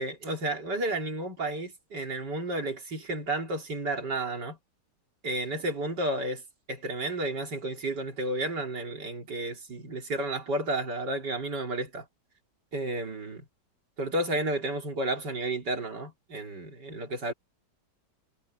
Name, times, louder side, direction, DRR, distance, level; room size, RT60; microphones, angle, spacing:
voice 1, 0.0-4.6 5.2-6.4 6.7-12.1 12.7-13.4 14.0-17.3, right 1 dB, 75° right, 3.9 m, -32 dB
omnidirectional pair, 1.9 m